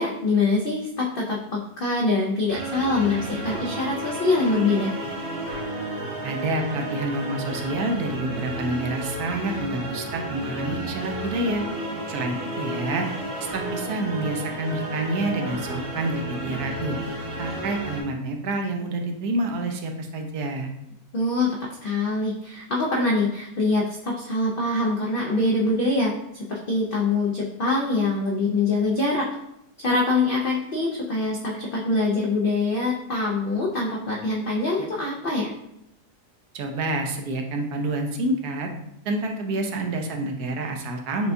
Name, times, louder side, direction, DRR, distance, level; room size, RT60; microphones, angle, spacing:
voice 1, 0.0-4.9 21.1-21.5 21.8-29.3 29.8-35.5, left 3 dB, 75° left, -3 dB, 0.5 m, -24 dB
sound 1, 2.5-18.0, right 1 dB, 50° right, 0.8 m, -32 dB
voice 2, 6.2-11.6 12.1-13.1 13.5-17.0 17.4-20.7 36.5-38.7 39.0-41.3, right 2 dB, 80° right, 4 dB, 1.1 m, -28 dB
6.7 x 2.2 x 2.6 m, 0.80 s
omnidirectional pair, 1.7 m